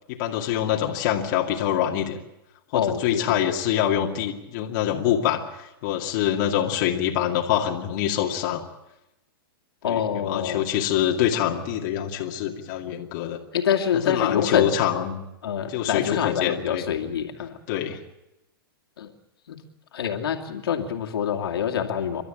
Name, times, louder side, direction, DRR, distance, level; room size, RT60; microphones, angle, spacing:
voice 1, 0.1-2.2 2.7-8.6 9.8-13.4 13.9-15.2 15.7-16.9 17.7-18.0, left 10 dB, 50° left, 0 dB, 2.4 m, -25 dB
voice 2, 2.7-3.4 9.8-10.6 13.5-14.7 15.4-17.5 19.0-19.1 19.5-19.6 19.9-22.2, left 8 dB, 80° left, 2 dB, 2.6 m, -25 dB
29.0 x 12.5 x 9.0 m, 0.95 s
hypercardioid pair, 135°, 12 cm